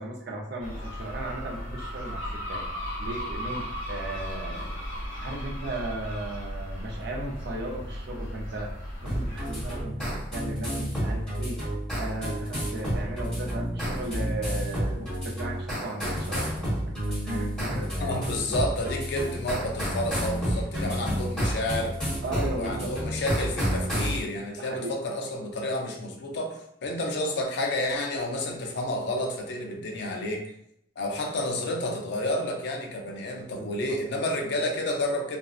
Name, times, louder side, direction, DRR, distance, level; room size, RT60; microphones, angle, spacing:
voice 1, 0.0-2.6 3.0-4.7 5.2-8.7 9.0-11.6 12.0-16.5 16.8-18.2 20.5-20.6 22.2-22.9 24.6-24.9 33.6-34.0, right 1 dB, 60° right, 0 dB, 0.5 m, -36 dB
sound 1, 0.6-9.8, equal, 85° left, 0.9 m, -36 dB
sound 2, 9.1-24.2, equal, 5° left, 1.0 m, -30 dB
voice 2, 18.0-22.0 22.5-30.5 31.0-35.4, left 1 dB, 65° left, 2 dB, 0.4 m, -30 dB
2.5 x 2.1 x 2.3 m, 0.77 s
head